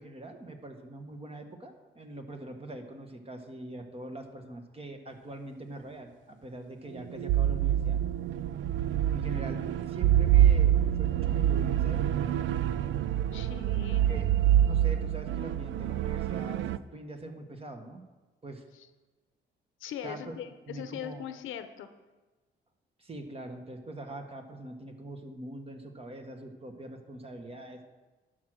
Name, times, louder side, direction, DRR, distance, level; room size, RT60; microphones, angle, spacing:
voice 1, 0.0-8.0 9.1-12.3 13.9-14.3 14.6-18.0 18.4-18.6 20.0-20.3 20.7-21.2 23.0-27.9, right 2 dB, 30° right, 4 dB, 1.5 m, -43 dB
sound 1, 7.0-16.8, right 11 dB, 75° right, 0.4 m, -26 dB
voice 2, 13.3-14.0 19.8-21.9, left 9 dB, 85° left, 10 dB, 0.8 m, -40 dB
11.5 x 6.2 x 6.3 m, 1.2 s
cardioid pair, 90°, 20 cm